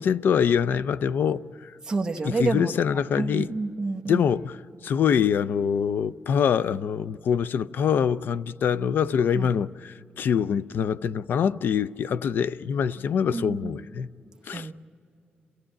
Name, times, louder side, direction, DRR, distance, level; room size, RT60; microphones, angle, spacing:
voice 1, 0.0-1.8 2.2-3.5 4.1-14.1 14.5-14.7, left 7 dB, 75° left, 0.4 m, -25 dB
voice 2, 1.9-2.7 3.2-4.2 9.3-9.5 13.3-13.8 14.5-14.7, right 3 dB, 20° right, 0.9 m, -28 dB
27.5 x 15.5 x 8.8 m
wide cardioid pair, 145°, 4 cm